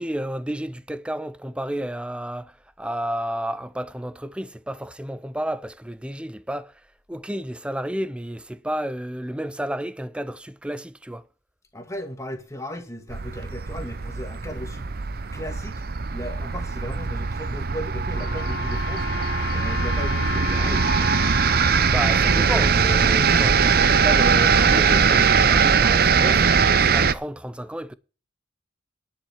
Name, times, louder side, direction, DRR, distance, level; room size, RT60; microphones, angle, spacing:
voice 1, 0.0-6.8 7.1-11.2 21.9-26.4 26.9-27.9, right 1 dB, 5° right, 0.5 m, -31 dB
voice 2, 11.7-14.9 15.3-15.8 16.1-19.1 19.5-21.1, equal, 15° left, 2.0 m, -36 dB
sound 1, 13.1-27.1, right 5 dB, 55° right, 0.7 m, -21 dB
Wind instrument woodwind instrument, 18.1-23.3, left 6 dB, 80° left, 1.3 m, -34 dB
10.5 x 7.3 x 7.2 m
head